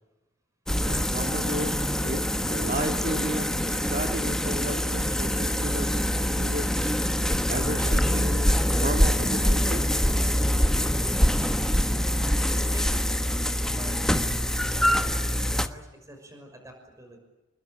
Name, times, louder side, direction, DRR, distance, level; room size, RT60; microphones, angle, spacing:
sound 1, 0.7-15.7, equal, 5° left, 1.2 m, -25 dB
voice 1, 0.9-1.8 2.0-5.9 6.3-6.9 7.5-9.9, right 1 dB, 45° right, 4 dB, 2.1 m, -34 dB
voice 2, 12.7-13.2 13.6-14.0 15.0-17.2, right 1 dB, 15° right, 4 dB, 5.9 m, -47 dB
29.0 x 21.5 x 8.7 m, 1.0 s
head